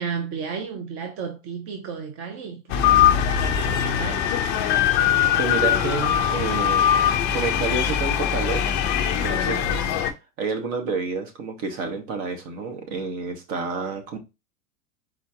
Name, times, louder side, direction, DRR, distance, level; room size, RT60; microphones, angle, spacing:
voice 1, 0.0-2.9 3.4-4.3, right 6 dB, 30° right, 0.5 m, -33 dB
sound 1, 2.7-10.1, left 9 dB, 25° left, 0.4 m, -21 dB
voice 2, 5.4-6.9 7.3-8.7 9.1-10.0 10.4-14.2, right 4 dB, 50° right, 1.5 m, -29 dB
4.4 x 2.8 x 3.7 m
supercardioid pair, 135°, 48 cm